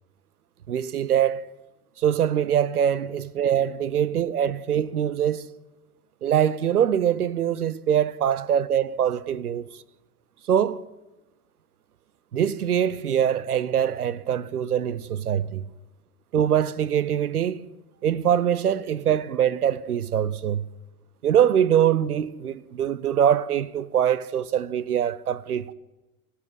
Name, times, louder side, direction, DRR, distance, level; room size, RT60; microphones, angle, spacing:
voice 1, 0.7-1.5 2.0-5.5 6.2-9.6 10.5-10.8 12.3-15.6 16.3-17.7 18.0-20.6 21.2-25.7, right 9 dB, 85° right, 0.7 m, -23 dB
13.0 x 10.5 x 9.5 m
figure-of-eight pair, 75°, 44 cm